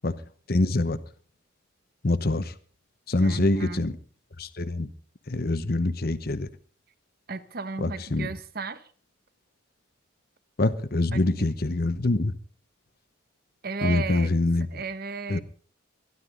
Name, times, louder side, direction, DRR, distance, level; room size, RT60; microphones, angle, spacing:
voice 1, 0.5-1.0 2.0-2.5 3.1-3.9 4.4-4.9 5.3-6.5 7.8-8.3 10.6-12.3 13.8-14.7 15.3-15.4, left 2 dB, 45° left, 0.9 m, -25 dB
voice 2, 3.2-3.9 7.3-8.9 11.1-11.5 13.6-14.3 14.7-15.4, right 4 dB, 50° right, 1.0 m, -35 dB
21.5 x 12.0 x 3.8 m
head